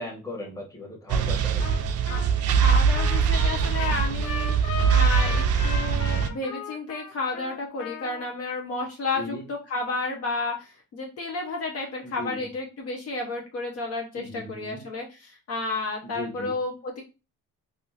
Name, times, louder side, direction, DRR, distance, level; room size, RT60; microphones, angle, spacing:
voice 1, 0.0-1.7 9.1-9.5 12.0-12.5 14.1-14.8 16.0-16.5, left 1 dB, 10° left, -1 dB, 1.1 m, -37 dB
sound 1, 1.1-6.3, right 6 dB, 50° right, 0.5 m, -22 dB
Trumpet, 1.6-1.8 2.1-8.3, left 5 dB, 80° left, 0.9 m, -36 dB
voice 2, 2.6-17.0, left 3 dB, 45° left, 1 dB, 0.7 m, -32 dB
3.4 x 2.6 x 2.8 m, 0.30 s
cardioid pair, 120°, 33 cm